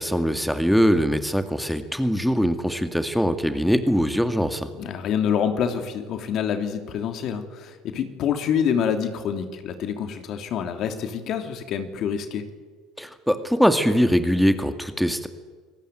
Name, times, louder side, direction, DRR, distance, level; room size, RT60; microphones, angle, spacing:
voice 1, 0.0-4.7 13.0-15.3, equal, ahead, 8 dB, 2.2 m, -22 dB
voice 2, 4.8-12.4, left 8 dB, 55° left, 7 dB, 3.1 m, -26 dB
27.5 x 19.0 x 9.3 m, 1.5 s
hypercardioid pair, 80°, 0 cm